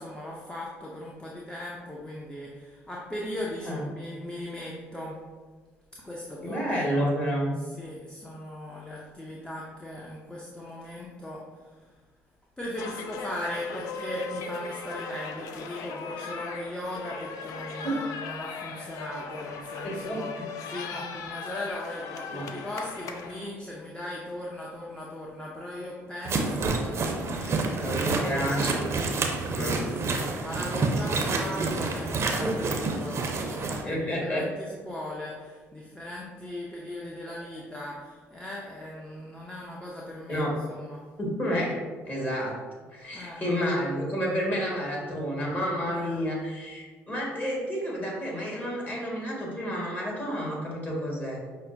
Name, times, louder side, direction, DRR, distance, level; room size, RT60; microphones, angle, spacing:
voice 1, 0.0-5.2 6.0-7.1 7.6-12.0 12.6-20.3 20.6-28.4 29.5-41.0 43.1-43.4 45.8-46.3, left 1 dB, 15° left, -4 dB, 0.6 m, -38 dB
voice 2, 3.6-4.0 6.4-7.5 17.8-18.0 19.8-20.5 22.3-22.5 27.8-28.8 29.5-29.8 32.4-32.5 33.8-34.4 40.3-40.5 41.2-41.8 42.1-42.6 42.9-51.4, equal, 30° left, -3 dB, 1.5 m, -30 dB
sound 1, 12.8-23.5, left 4 dB, 70° left, 0.3 m, -38 dB
sound 2, 26.3-33.8, right 3 dB, 45° right, 0.5 m, -28 dB
5.4 x 2.1 x 2.6 m, 1.4 s
hypercardioid pair, 60°, 6 cm